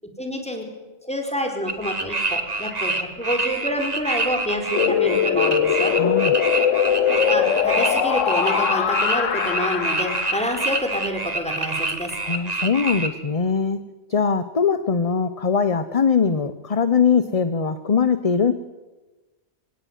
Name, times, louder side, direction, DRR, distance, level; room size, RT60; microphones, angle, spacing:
voice 1, 0.2-0.6 1.0-5.9 7.1-12.2, equal, 5° left, 3 dB, 4.3 m, -27 dB
sound 1, 1.7-13.1, right 3 dB, 35° right, 1.9 m, -26 dB
sound 2, 4.7-10.6, left 8 dB, 90° left, 1.3 m, -21 dB
voice 2, 5.9-6.4 12.2-13.8 14.1-18.5, left 6 dB, 35° left, 12 dB, 0.8 m, -21 dB
25.0 x 17.5 x 9.4 m, 1.2 s
omnidirectional pair, 1.3 m